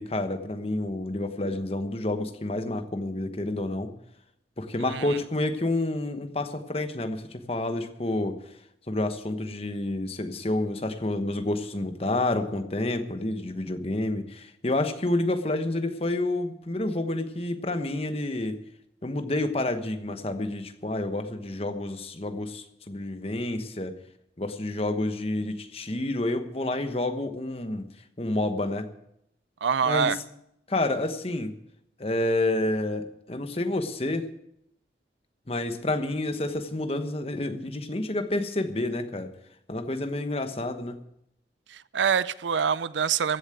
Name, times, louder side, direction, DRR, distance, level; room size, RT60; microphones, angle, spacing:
voice 1, 0.0-3.9 4.6-8.4 8.9-18.6 19.0-23.9 24.4-27.9 28.2-28.9 29.9-30.1 30.7-31.5 32.0-34.3 35.5-39.3 39.7-41.0, left 2 dB, 35° left, 1.1 m, -29 dB
voice 2, 4.8-5.2 29.6-30.2 41.7-43.4, right 6 dB, 85° right, 0.5 m, -25 dB
15.5 x 7.3 x 9.2 m
head